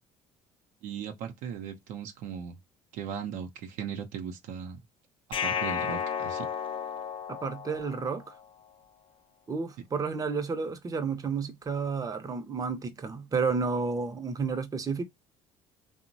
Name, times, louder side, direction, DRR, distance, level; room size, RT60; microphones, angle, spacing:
voice 1, 0.8-2.6 2.9-4.8 5.4-6.5, right 7 dB, 70° right, 0.6 m, -38 dB
sound 1, 5.3-8.4, left 7 dB, 40° left, 0.4 m, -33 dB
voice 2, 7.3-8.3 9.5-15.0, right 5 dB, 25° right, 0.6 m, -31 dB
2.8 x 2.1 x 2.5 m
hypercardioid pair, 65°, 14 cm